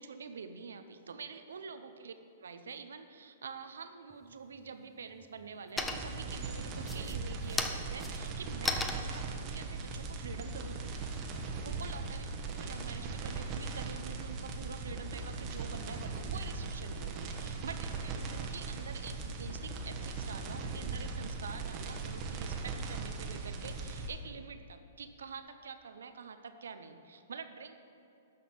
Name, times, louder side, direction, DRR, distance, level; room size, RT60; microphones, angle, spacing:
voice 1, 0.0-2.1 2.4-11.1 11.6-12.3 12.5-27.7, right 5 dB, 80° right, 9 dB, 0.7 m, -46 dB
Drop Pencil, 4.1-4.7 5.1-5.5 5.8-6.3 6.8-11.2, left 3 dB, 10° left, 0.6 m, -38 dB
sound 1, 5.8-24.1, right 4 dB, 35° right, 1.1 m, -39 dB
12.0 x 4.2 x 7.0 m, 2.8 s
hypercardioid pair, 120°, 0 cm